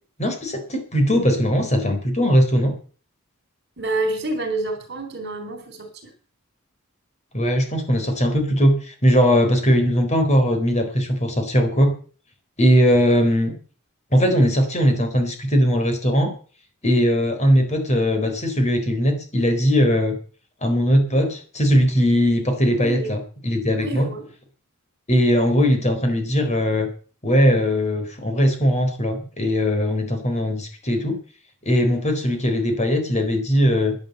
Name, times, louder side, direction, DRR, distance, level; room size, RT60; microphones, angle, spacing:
voice 1, 0.2-2.8 7.3-11.9 12.6-13.6 14.1-16.3 16.8-20.2 20.6-24.1 25.1-26.9 27.2-31.2 31.7-34.0, equal, 30° left, 6 dB, 4.1 m, -19 dB
voice 2, 3.8-6.1 22.8-23.1 23.8-24.3, right 2 dB, 50° right, 8 dB, 4.1 m, -28 dB
11.0 x 10.5 x 8.0 m, 0.40 s
head